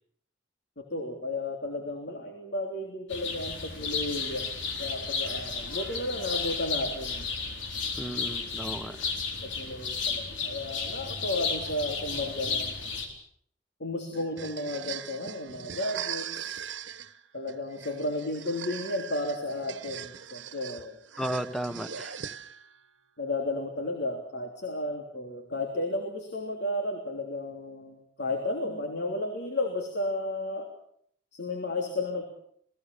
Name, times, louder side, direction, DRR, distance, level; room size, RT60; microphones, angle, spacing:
voice 1, 0.8-4.5 4.8-7.3 9.4-12.7 13.8-16.6 17.3-21.0 23.2-30.7 31.3-32.3, left 2 dB, 65° left, 3 dB, 3.5 m, -33 dB
sound 1, 3.1-13.1, left 5 dB, 90° left, 4.3 m, -33 dB
voice 2, 8.0-9.0 21.2-22.2, right 1 dB, ahead, 11 dB, 1.4 m, -34 dB
sound 2, 14.1-22.8, right 9 dB, 80° right, 1.4 m, -40 dB
29.0 x 19.5 x 7.1 m, 0.65 s
head